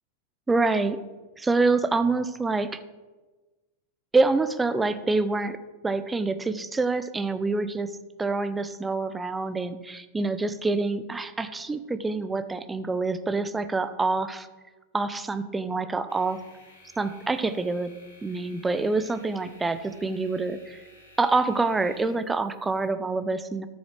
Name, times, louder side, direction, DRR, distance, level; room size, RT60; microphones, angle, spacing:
voice 1, 0.5-1.0 1.4-2.8 4.1-5.6 5.8-7.9 8.2-14.5 14.9-16.4 17.0-17.9 18.2-20.8 21.2-23.7, right 3 dB, 10° right, 11 dB, 0.6 m, -26 dB
sound 1, 16.1-22.9, left 2 dB, 55° left, 3.1 m, -55 dB
13.5 x 7.1 x 3.3 m, 1.2 s
figure-of-eight pair, 90°, 0 cm